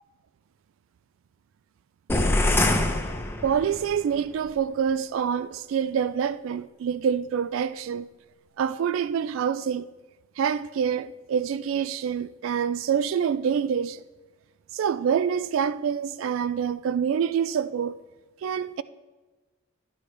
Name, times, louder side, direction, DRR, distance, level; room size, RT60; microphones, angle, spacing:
sound 1, 2.1-3.9, left 2 dB, 10° left, 0.7 m, -24 dB
voice 1, 3.4-8.1 8.6-9.9 10.4-14.0 14.7-18.0 18.4-18.8, right 7 dB, 65° right, 0.3 m, -26 dB
11.5 x 10.0 x 3.2 m
head